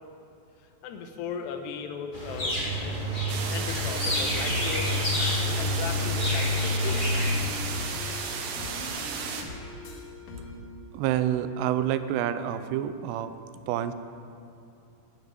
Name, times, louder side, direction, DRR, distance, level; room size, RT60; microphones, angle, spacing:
voice 1, 0.8-2.6 3.5-7.1, left 6 dB, 85° left, 6 dB, 3.1 m, -37 dB
sound 1, 2.1-7.4, left 1 dB, 20° left, 1.3 m, -28 dB
sound 2, 3.3-9.4, right 5 dB, 70° right, 2.4 m, -34 dB
sound 3, 3.9-10.6, left 2 dB, 55° left, 2.7 m, -42 dB
voice 2, 10.9-13.3 13.7-13.9, right 11 dB, 85° right, 11 dB, 2.8 m, -28 dB
12.5 x 8.0 x 9.5 m, 2.6 s
omnidirectional pair, 4.7 m